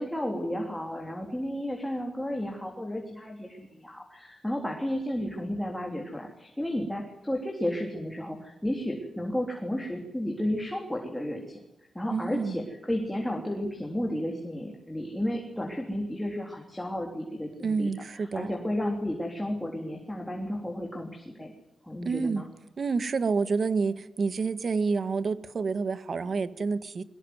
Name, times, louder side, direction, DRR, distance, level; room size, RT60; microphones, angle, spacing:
voice 1, 0.0-11.6 11.9-17.9 18.2-21.5 21.8-22.5, left 1 dB, 5° left, 1 dB, 3.6 m, -32 dB
voice 2, 12.1-12.6 17.6-18.5 22.0-22.4 22.8-27.0, right 4 dB, 45° right, 12 dB, 1.5 m, -28 dB
23.0 x 20.5 x 9.6 m, 0.84 s
wide cardioid pair, 170°, 0 cm